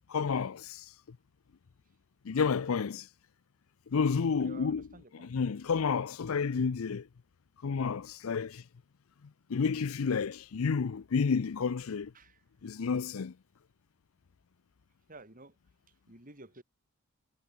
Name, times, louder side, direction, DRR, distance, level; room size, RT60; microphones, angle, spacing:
voice 1, 0.1-0.8 2.2-3.0 3.9-4.8 5.2-7.0 7.6-8.6 9.5-12.1 12.6-13.3, left 5 dB, 85° left, 0.5 m, -30 dB
voice 2, 4.4-5.3 12.1-12.4 15.1-15.6 15.9-16.6, right 2 dB, 40° right, 4.6 m, -52 dB
head